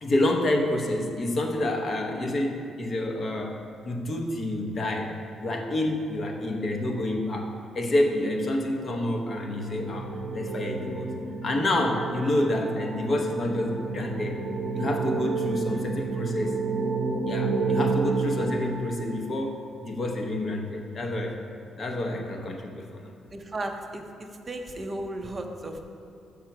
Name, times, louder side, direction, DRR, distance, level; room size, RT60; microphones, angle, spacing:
voice 1, 0.0-3.6 3.8-11.1 11.4-14.4 14.7-16.5 17.3-21.4 21.8-23.1, left 1 dB, 35° left, 2 dB, 0.8 m, -28 dB
sound 1, 8.8-19.6, right 4 dB, 55° right, 0.9 m, -30 dB
voice 2, 23.3-25.8, right 1 dB, 25° right, 4 dB, 0.6 m, -35 dB
6.7 x 5.8 x 5.8 m, 2.6 s
cardioid pair, 150°, 0 cm